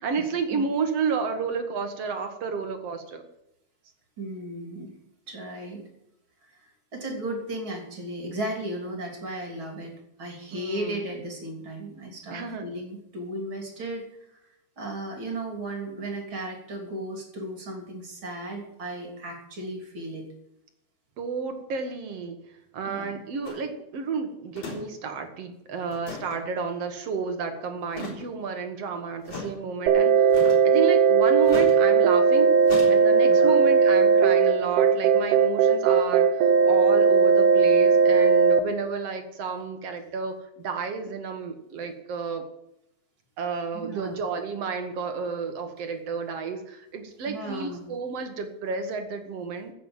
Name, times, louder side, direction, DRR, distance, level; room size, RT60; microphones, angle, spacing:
voice 1, 0.0-3.2 10.5-11.0 12.3-12.7 21.2-22.4 22.7-32.5 32.9-42.4 43.4-49.7, right 5 dB, 60° right, 6 dB, 2.3 m, -31 dB
voice 2, 4.2-4.9 5.3-5.9 6.9-9.9 10.2-14.1 14.8-20.3 22.9-23.2 33.3-33.5 43.7-44.2 47.3-47.8, right 1 dB, 40° right, 1 dB, 3.8 m, -35 dB
sound 1, 23.4-23.6 24.6-24.8 25.1-25.2 25.9-26.4 27.9-28.3 29.3-29.5 30.3-30.7 31.5-31.8 32.7-32.9, left 3 dB, 55° left, 4.8 m, -36 dB
sound 2, 29.9-38.6, right 5 dB, 90° right, 2.5 m, -18 dB
15.5 x 7.6 x 7.4 m, 0.81 s
omnidirectional pair, 3.4 m